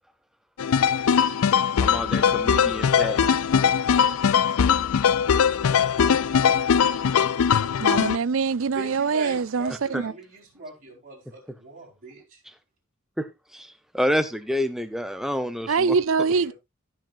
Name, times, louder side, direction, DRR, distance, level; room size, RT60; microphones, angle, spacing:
sound 1, 0.6-8.2, left 7 dB, 90° left, 0.4 m, -21 dB
voice 1, 1.8-3.2 9.9-10.0 13.2-13.3 13.5-16.3, equal, ahead, 0.9 m, -28 dB
voice 2, 7.8-10.1 15.7-16.5, right 5 dB, 65° right, 0.5 m, -24 dB
voice 3, 8.7-12.4 16.2-16.5, right 3 dB, 40° right, 4.5 m, -39 dB
17.5 x 6.2 x 2.5 m
head